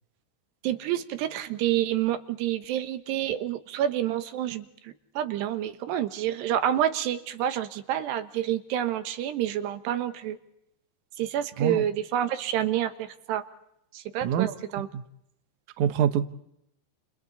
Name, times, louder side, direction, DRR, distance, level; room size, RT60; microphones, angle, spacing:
voice 1, 0.6-10.4 11.2-13.5 13.9-14.9, right 11 dB, 85° right, 9 dB, 3.4 m, -28 dB
voice 2, 14.2-14.6 14.9-15.0 15.8-16.3, right 9 dB, 70° right, 10 dB, 2.0 m, -25 dB
30.0 x 29.5 x 4.1 m, 0.79 s
omnidirectional pair, 4.7 m